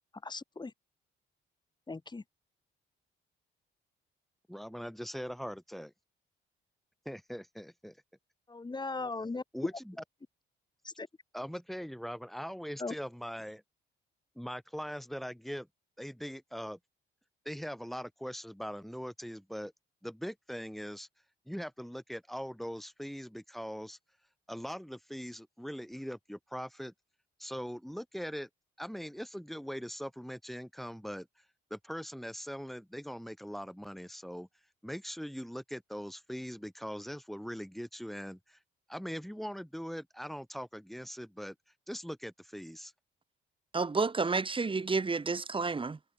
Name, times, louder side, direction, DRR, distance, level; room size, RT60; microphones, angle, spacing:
voice 1, 0.2-0.7 1.9-2.2 8.5-9.4 11.0-11.1 12.8-12.9, left 3 dB, 20° left, 4.1 m, -38 dB
voice 2, 4.5-5.9 7.0-8.0 9.5-10.0 11.3-13.6 14.3-15.7 16.0-16.8 17.4-19.7 20.0-21.1 21.5-24.0 24.5-26.9 27.4-28.5 28.8-31.3 31.7-34.5 34.8-38.6 38.9-41.5 41.9-42.9, equal, ahead, 4.9 m, -41 dB
voice 3, 43.7-46.0, right 4 dB, 25° right, 2.2 m, -30 dB
cardioid pair, 90°, 20 cm